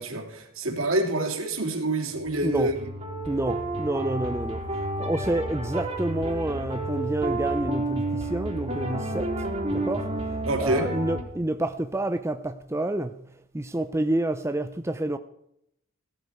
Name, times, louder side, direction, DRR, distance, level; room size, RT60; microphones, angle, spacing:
voice 1, 0.0-2.7 10.5-10.9, right 1 dB, 70° right, 2.9 m, -27 dB
sound 1, 2.2-11.2, right 1 dB, 30° right, 2.9 m, -31 dB
voice 2, 3.3-4.6 5.0-9.3 9.7-10.1 10.6-13.2 13.5-15.2, right 1 dB, 10° right, 0.5 m, -28 dB
17.0 x 12.0 x 4.8 m
head